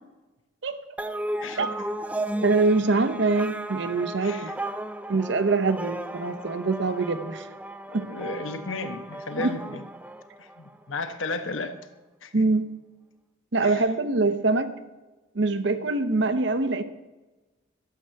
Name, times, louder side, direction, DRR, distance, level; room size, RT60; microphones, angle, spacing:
sound 1, 1.0-10.8, right 1 dB, 5° right, 0.3 m, -35 dB
voice 1, 2.4-4.5 5.1-7.5 7.9-8.1 9.4-9.5 12.3-12.7 13.5-14.7 15.3-16.8, right 3 dB, 60° right, 11 dB, 0.7 m, -24 dB
voice 2, 4.2-4.6 7.9-9.8 10.4-11.7 12.2-12.3 13.6-13.9, left 3 dB, 80° left, 8 dB, 1.0 m, -34 dB
12.0 x 5.9 x 7.6 m, 1.1 s
head